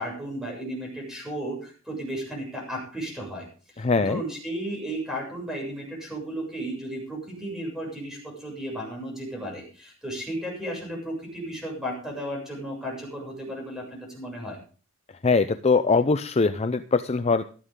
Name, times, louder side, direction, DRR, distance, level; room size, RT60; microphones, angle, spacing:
voice 1, 0.0-3.5 3.7-14.6, right 1 dB, 5° right, -1 dB, 6.9 m, -34 dB
voice 2, 3.8-4.2 15.2-17.4, left 4 dB, 30° left, 10 dB, 0.5 m, -22 dB
16.0 x 12.5 x 3.7 m, 0.38 s
head